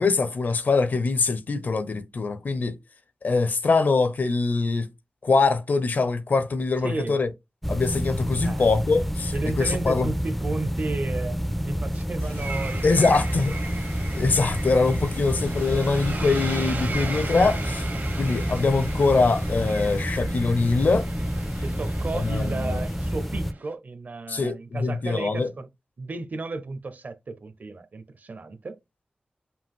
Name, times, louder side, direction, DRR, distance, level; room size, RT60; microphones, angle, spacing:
voice 1, 0.0-2.8 3.2-4.9 5.2-7.3 7.7-10.1 12.8-13.6 14.1-17.8 18.2-21.1 22.1-22.8 24.3-25.5, left 3 dB, 70° left, 0.8 m, -23 dB
voice 2, 6.8-7.2 8.4-8.7 9.3-13.2 21.6-25.7 26.0-28.8, right 3 dB, 65° right, 0.8 m, -34 dB
sound 1, 7.6-23.5, equal, 5° left, 0.4 m, -29 dB
sound 2, 12.2-20.1, left 3 dB, 85° left, 1.9 m, -46 dB
sound 3, 12.3-23.7, right 3 dB, 85° right, 1.7 m, -38 dB
5.7 x 2.4 x 3.6 m
wide cardioid pair, 110°, 3 cm